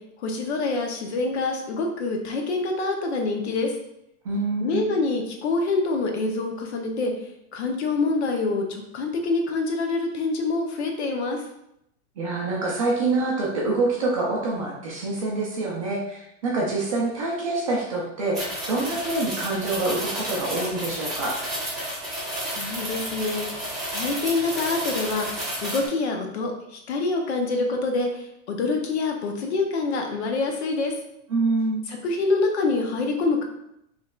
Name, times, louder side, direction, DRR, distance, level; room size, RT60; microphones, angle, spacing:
voice 1, 0.2-3.8 4.6-11.4 22.4-30.9 31.9-33.4, left 3 dB, 50° left, 3 dB, 0.8 m, -26 dB
voice 2, 4.2-4.9 12.2-21.4 31.3-31.8, right 3 dB, 25° right, -4 dB, 0.4 m, -26 dB
Chains Reversed, 18.3-25.9, right 1 dB, ahead, 0.9 m, -31 dB
5.3 x 3.2 x 2.3 m, 0.80 s
supercardioid pair, 180°, 41 cm